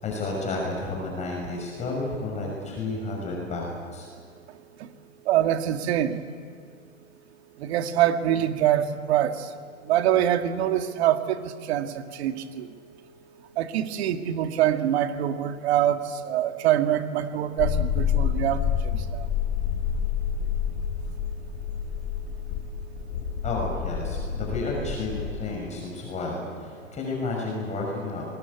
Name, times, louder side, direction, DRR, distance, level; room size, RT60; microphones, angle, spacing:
voice 1, 0.0-4.1 23.4-28.3, left 3 dB, 15° left, -1 dB, 6.1 m, -31 dB
voice 2, 5.3-6.2 7.6-9.4 9.9-12.7 13.6-19.3, right 11 dB, 50° right, 7 dB, 2.1 m, -24 dB
sound 1, 17.6-25.3, left 8 dB, 50° left, 5.5 m, -28 dB
27.0 x 21.5 x 8.4 m, 2.3 s
hypercardioid pair, 140°, 40 cm